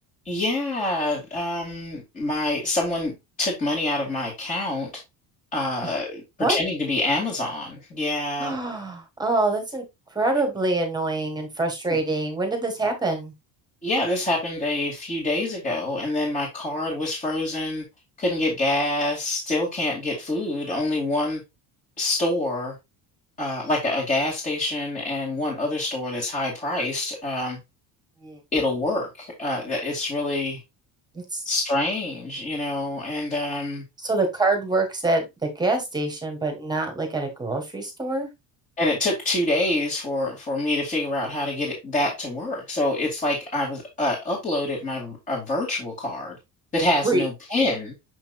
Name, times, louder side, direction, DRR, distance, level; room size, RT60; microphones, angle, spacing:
voice 1, 0.2-4.9 5.5-6.2 6.5-8.5 11.9-12.0 13.8-17.8 18.2-21.4 22.0-22.8 23.4-27.6 28.5-30.6 31.4-33.8 38.8-46.4 46.7-47.9, left 2 dB, 20° left, 2.4 m, -26 dB
voice 2, 8.4-9.8 10.1-13.3 28.2-28.4 31.1-31.4 34.0-38.3 47.0-47.2, right 2 dB, 10° right, 1.7 m, -25 dB
6.9 x 5.8 x 2.4 m
cardioid pair, 165°, 39 cm